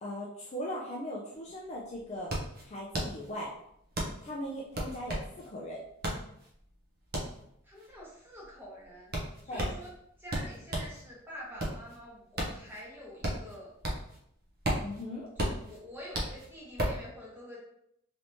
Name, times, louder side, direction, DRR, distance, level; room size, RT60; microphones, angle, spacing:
voice 1, 0.0-2.3 2.6-3.5 4.2-5.8 9.5-9.6 14.8-15.3, equal, 30° left, -3 dB, 0.4 m, -39 dB
sound 1, 1.3-1.4 1.7-11.0 11.4-14.2 14.5-17.1, right 1 dB, 45° right, 0.7 m, -35 dB
voice 2, 7.6-9.9 10.2-13.7 15.4-17.6, equal, 10° right, -6 dB, 1.0 m, -47 dB
3.3 x 2.9 x 2.7 m, 0.74 s
head